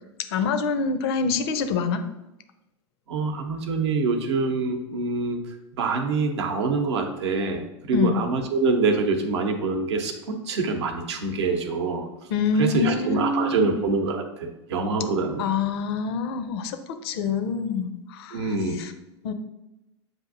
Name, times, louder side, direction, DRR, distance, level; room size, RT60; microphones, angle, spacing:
voice 1, 0.3-2.0 7.9-8.2 12.3-13.8 15.4-16.8 17.0-18.9 19.2-19.3, left 5 dB, 60° left, 9 dB, 0.5 m, -26 dB
voice 2, 3.1-5.4 5.7-12.1 12.6-15.4 18.3-18.8, right 4 dB, 70° right, 5 dB, 0.7 m, -25 dB
7.6 x 2.6 x 2.5 m, 0.96 s
figure-of-eight pair, 85°, 15 cm